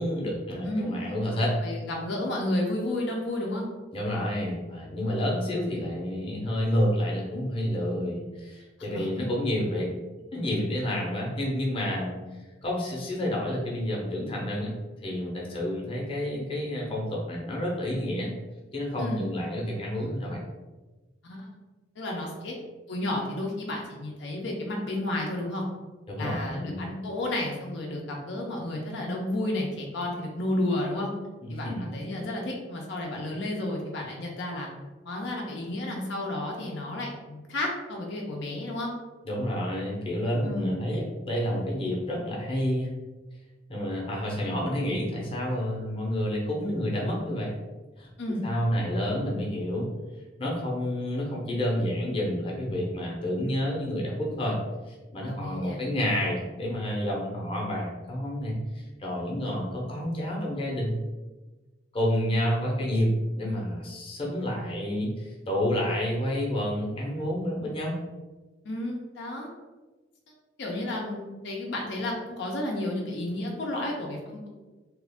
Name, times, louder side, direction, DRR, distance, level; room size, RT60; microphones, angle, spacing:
voice 1, 0.0-1.6 3.9-9.9 10.3-12.2 12.6-14.7 15.0-18.3 18.7-20.4 26.1-26.8 31.4-31.9 39.2-42.9 43.7-47.5 48.0-48.1 48.4-49.9 50.4-54.6 54.9-61.0 61.9-63.1 63.4-68.0, equal, 30° left, -3 dB, 0.8 m, -29 dB
voice 2, 0.6-1.1 1.6-3.7 8.9-9.1 19.0-19.2 21.2-21.5 22.0-22.5 22.9-25.6 26.2-31.1 31.5-34.7 35.1-38.9 40.4-40.7 48.2-48.5 55.3-55.8 68.6-69.5 70.6-74.5, left 1 dB, 70° left, -1 dB, 0.6 m, -32 dB
2.9 x 2.4 x 3.5 m, 1.2 s
head